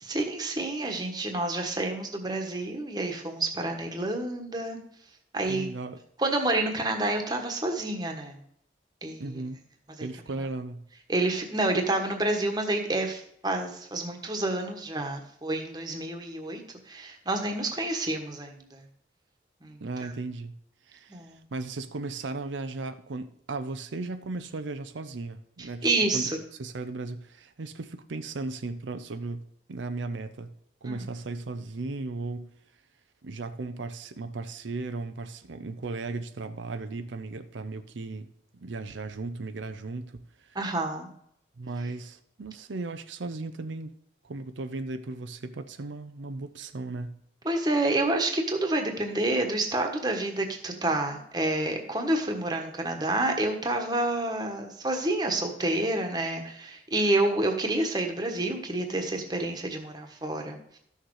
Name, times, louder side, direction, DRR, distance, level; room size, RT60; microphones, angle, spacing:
voice 1, 0.0-4.8 5.3-5.7 6.2-8.4 9.0-9.4 10.0-10.1 10.4-10.5 11.1-18.8 19.6-20.1 21.1-21.4 25.6-26.3 30.9-31.0 40.5-41.1 47.4-60.6, right 2 dB, 20° right, 1.3 m, -29 dB
voice 2, 5.5-6.0 9.2-9.6 10.0-10.9 19.8-20.5 20.9-25.9 26.1-26.3 26.6-30.5 30.8-32.5 33.2-38.3 38.5-40.6 41.6-44.0 44.2-47.2, right 3 dB, 90° right, 0.6 m, -36 dB
13.0 x 6.5 x 4.8 m
head